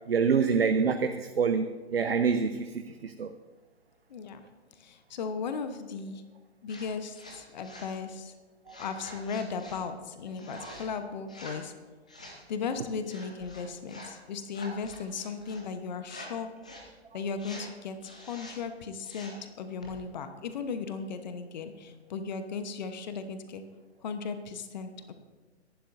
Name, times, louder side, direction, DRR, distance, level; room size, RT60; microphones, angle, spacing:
voice 1, 0.1-3.3 10.6-10.7, right 5 dB, 60° right, 7 dB, 0.9 m, -26 dB
voice 2, 4.1-4.4 4.8-6.2 6.6-8.3 8.8-11.7 12.5-16.5 17.1-23.6 24.0-25.1, left 5 dB, 40° left, 9 dB, 1.1 m, -36 dB
sound 1, 6.7-6.9 7.1-8.0 8.7-9.8 10.3-10.9 11.2-11.7 12.1-12.4 13.0-14.2 14.5-15.6 16.0-16.3 16.6-16.9 17.3-17.7 18.0-18.6 19.0-19.4 19.8-20.0, left 1 dB, 5° left, 0.3 m, -47 dB
24.0 x 11.5 x 2.7 m, 1.3 s
figure-of-eight pair, 125°, 33 cm